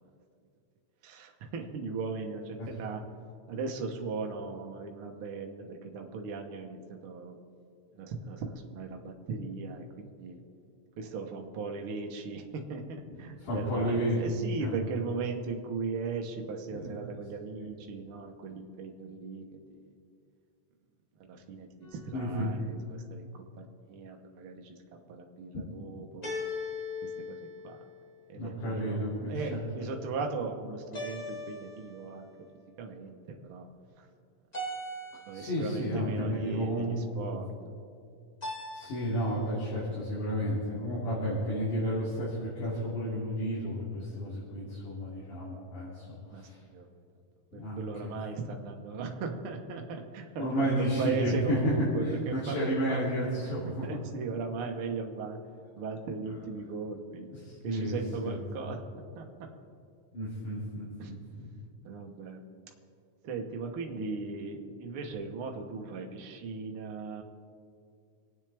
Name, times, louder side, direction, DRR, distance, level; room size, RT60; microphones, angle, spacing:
voice 1, 1.0-3.0 3.5-7.3 7.9-10.4 11.0-19.4 21.2-24.7 25.1-26.3 27.0-27.4 27.6-27.8 28.3-32.3 32.8-33.1 33.4-33.7 34.0-34.1 35.2-37.5 46.3-46.9 47.5-53.0 53.8-55.4 55.7-57.3 57.6-58.8 59.1-59.5 61.0-61.1 61.8-62.4 63.2-67.2, right 4 dB, 60° right, 2 dB, 1.4 m, -38 dB
voice 2, 13.4-14.8 16.8-16.9 22.1-22.5 25.5-25.6 28.3-29.6 35.3-36.9 37.2-37.3 38.7-46.6 47.5-48.1 50.4-53.8 57.4-58.4 58.6-58.7 60.1-61.5, equal, 65° left, -9 dB, 4.5 m, -32 dB
sound 1, 21.8-22.5 26.2-28.2 30.9-32.3 34.5-35.7 38.4-39.4, left 2 dB, 30° left, 0.8 m, -40 dB
26.5 x 9.1 x 3.5 m, 2.4 s
omnidirectional pair, 3.9 m